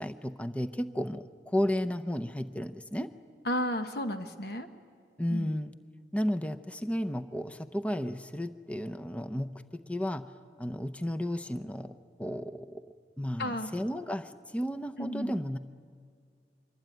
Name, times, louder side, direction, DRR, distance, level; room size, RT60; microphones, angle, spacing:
voice 1, 0.0-3.1 5.2-5.7 6.1-10.2 10.6-11.9 12.2-12.8 13.2-15.6, equal, 5° left, 11 dB, 0.6 m, -33 dB
voice 2, 3.4-4.7 5.3-5.5 13.4-13.7 15.0-15.4, left 1 dB, 60° left, 7 dB, 1.2 m, -33 dB
25.0 x 23.0 x 9.2 m, 2.1 s
head